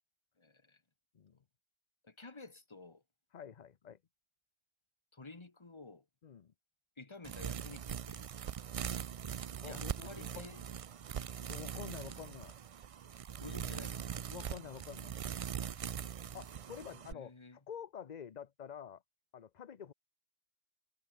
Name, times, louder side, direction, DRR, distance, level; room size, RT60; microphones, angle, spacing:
voice 1, 0.4-0.8 2.0-3.0 5.1-6.0 7.0-8.5 9.6-10.6 13.4-14.2 17.0-17.6, left 3 dB, 25° left, 1.5 m, -52 dB
voice 2, 3.3-4.0 6.2-6.5 9.6-10.4 11.5-12.5 14.3-15.2 16.0-19.0 19.3-19.9, left 8 dB, 45° left, 0.8 m, -48 dB
sound 1, 7.2-17.1, right 8 dB, 55° right, 0.4 m, -42 dB
omnidirectional pair, 1.2 m